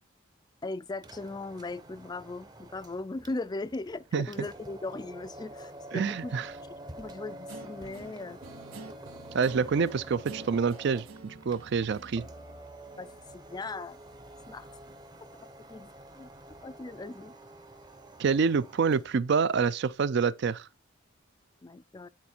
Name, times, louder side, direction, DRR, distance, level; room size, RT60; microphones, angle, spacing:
voice 1, 0.6-6.3 7.0-8.4 13.0-14.0 14.5-14.7 15.7-16.3 16.6-17.3 21.6-22.1, left 2 dB, 20° left, 0.3 m, -38 dB
sound 1, 0.9-19.2, right 1 dB, 20° right, 0.7 m, -48 dB
voice 2, 5.9-6.5 9.3-12.3 18.2-20.7, right 5 dB, 55° right, 0.4 m, -27 dB
Guitar, 7.5-13.3, right 3 dB, 90° right, 1.2 m, -49 dB
9.5 x 4.3 x 4.3 m
head